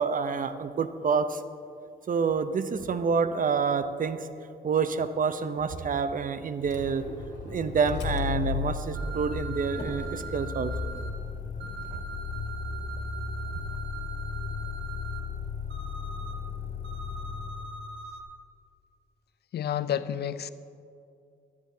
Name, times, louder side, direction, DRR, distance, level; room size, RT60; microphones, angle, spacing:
voice 1, 0.0-1.4 2.1-4.3 4.6-7.0 7.4-10.9, right 5 dB, 45° right, 0.7 m, -28 dB
Motor vehicle (road), 6.6-17.8, left 5 dB, 85° left, 1.9 m, -35 dB
sound 1, 8.9-11.1 11.6-15.2 15.7-16.3 16.8-18.2, right 5 dB, 80° right, 1.4 m, -42 dB
voice 2, 19.5-20.5, left 9 dB, 60° left, 0.4 m, -30 dB
15.5 x 12.0 x 2.8 m
cardioid pair, 75°, 19 cm